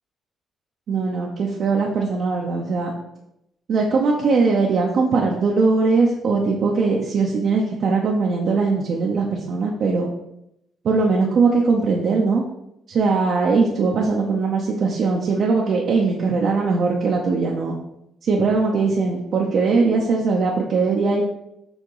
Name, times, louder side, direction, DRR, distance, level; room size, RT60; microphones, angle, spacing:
voice 1, 0.9-2.9 3.7-10.1 10.8-12.4 12.9-17.8 18.2-21.2, right 4 dB, 65° right, -1 dB, 0.8 m, -20 dB
6.5 x 3.6 x 4.8 m, 0.83 s
cardioid pair, 90°, 0 cm